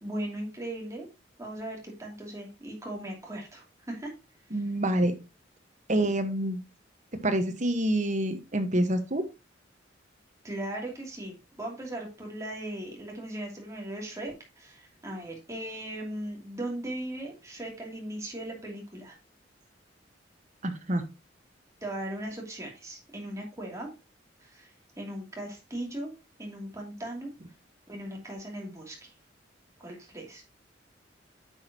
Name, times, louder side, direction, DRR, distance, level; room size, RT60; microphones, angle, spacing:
voice 1, 0.0-1.1 1.4-4.1 10.4-19.2 21.8-23.9 24.4-24.7 25.0-26.1 26.4-27.3 27.9-29.1 29.8-30.4, right 1 dB, 15° right, -1 dB, 2.8 m, -38 dB
voice 2, 4.5-5.1 5.9-6.6 7.2-9.2 20.6-21.0, right 1 dB, 40° right, 7 dB, 1.3 m, -27 dB
9.6 x 6.4 x 2.9 m, 0.27 s
head